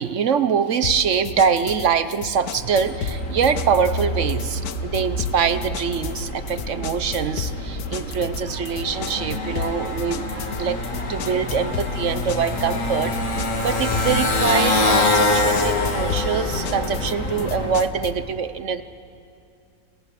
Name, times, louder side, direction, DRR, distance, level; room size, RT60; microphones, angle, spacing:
voice 1, 0.0-18.8, right 6 dB, 60° right, 12 dB, 1.1 m, -24 dB
sound 1, 0.8-18.3, left 8 dB, 90° left, 1.4 m, -34 dB
Motorcycle, 2.5-17.9, left 1 dB, 60° left, 2.6 m, -26 dB
28.5 x 27.5 x 6.7 m, 2.6 s
omnidirectional pair, 1.5 m